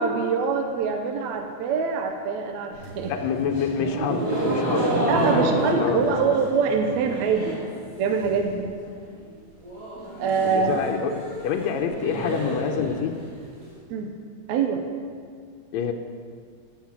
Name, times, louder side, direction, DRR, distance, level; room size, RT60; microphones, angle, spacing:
voice 1, 0.0-3.1 5.1-7.6 8.0-8.7 10.2-10.8 13.9-14.1 14.5-14.8, right 5 dB, 70° right, 4 dB, 1.9 m, -24 dB
sound 1, 2.7-7.7 8.0-8.6 8.9-9.0 9.2-9.3 9.6-13.6, right 1 dB, 55° right, 5.5 m, -29 dB
voice 2, 3.1-6.4 10.4-13.1 15.7-15.9, left 6 dB, 75° left, 3 dB, 1.6 m, -28 dB
16.5 x 6.7 x 7.3 m, 2.1 s
omnidirectional pair, 3.9 m